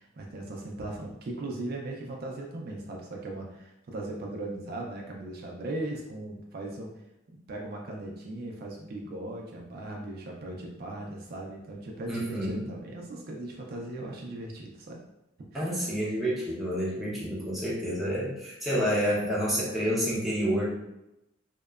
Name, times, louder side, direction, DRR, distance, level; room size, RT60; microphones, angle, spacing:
voice 1, 0.0-6.9 7.3-15.0 15.5-15.9 16.9-17.2, right 2 dB, 55° right, 0 dB, 0.4 m, -38 dB
voice 2, 12.1-12.6 15.5-20.7, equal, ahead, -7 dB, 0.7 m, -29 dB
2.8 x 2.1 x 2.3 m, 0.87 s
head